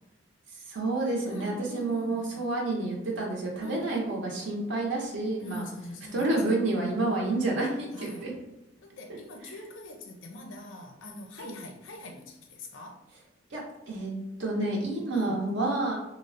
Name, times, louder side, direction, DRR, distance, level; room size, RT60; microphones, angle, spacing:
voice 1, 0.5-5.6 6.1-8.3 11.4-11.5 13.5-14.1 14.4-16.0, right 2 dB, 65° right, -2 dB, 0.6 m, -29 dB
voice 2, 1.2-2.4 3.6-4.1 5.4-6.6 7.9-8.3 8.8-13.0 15.1-15.4, left 1 dB, 85° left, 4 dB, 0.5 m, -43 dB
3.2 x 2.0 x 2.5 m, 0.95 s
head